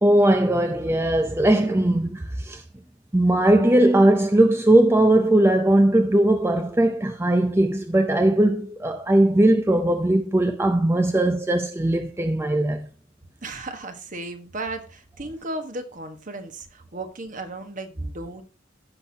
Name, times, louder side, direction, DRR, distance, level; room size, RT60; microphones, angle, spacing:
voice 1, 0.0-2.6 3.1-12.9, right 1 dB, 15° right, 0.5 m, -19 dB
voice 2, 13.4-18.4, right 2 dB, 40° right, 1.3 m, -35 dB
15.5 x 6.2 x 2.8 m
head